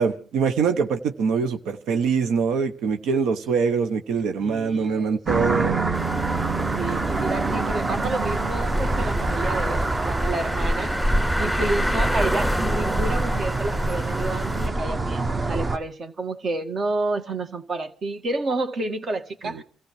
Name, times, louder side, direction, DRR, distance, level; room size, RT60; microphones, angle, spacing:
voice 1, 0.0-5.8 19.4-19.5, right 5 dB, 85° right, 1.0 m, -23 dB
voice 2, 4.4-5.2 6.8-19.6, right 2 dB, 50° right, 1.9 m, -30 dB
sound 1, 5.3-15.8, right 2 dB, 30° right, 1.1 m, -25 dB
sound 2, 5.9-14.7, equal, ahead, 2.6 m, -30 dB
29.5 x 15.0 x 3.2 m
cardioid pair, 90°, 0 cm